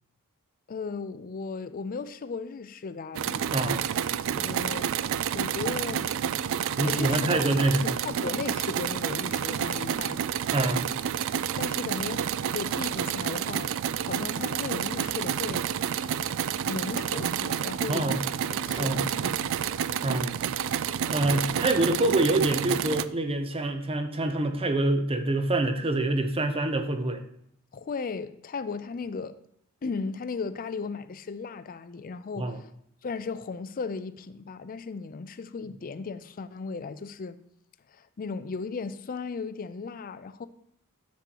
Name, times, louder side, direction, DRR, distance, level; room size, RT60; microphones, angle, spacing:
voice 1, 0.7-3.5 4.3-4.9 5.3-6.2 6.8-7.5 7.8-10.2 11.6-13.7 14.0-15.7 16.7-18.2 18.5-19.5 27.7-29.3 29.8-32.6 33.0-37.4 37.9-40.5, left 4 dB, 40° left, 0.4 m, -36 dB
sound 1, 3.1-23.0, right 9 dB, 60° right, 0.3 m, -29 dB
voice 2, 3.5-3.8 6.8-8.0 10.5-10.9 17.9-18.2 18.8-19.0 20.0-20.4 21.1-27.2 32.4-32.6, right 2 dB, 25° right, 0.7 m, -26 dB
10.0 x 7.6 x 2.9 m
head